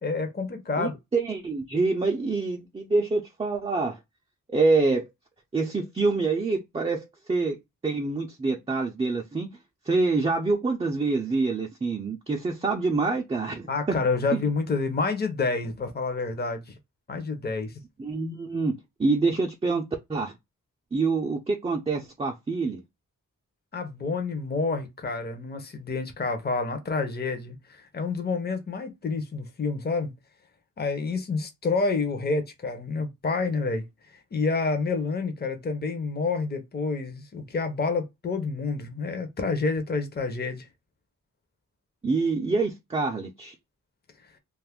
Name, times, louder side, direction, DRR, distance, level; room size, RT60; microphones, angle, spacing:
voice 1, 0.0-1.0 13.7-16.8 17.1-17.7 23.7-30.1 30.8-33.8 34.3-40.7, left 4 dB, 30° left, 0.6 m, -28 dB
voice 2, 0.8-4.0 4.5-5.1 5.5-9.5 9.9-14.0 14.3-14.4 18.0-18.7 19.0-19.8 20.1-20.3 20.9-22.8 42.0-43.5, right 3 dB, 20° right, 0.4 m, -26 dB
2.5 x 2.4 x 3.5 m
wide cardioid pair, 120°, 33 cm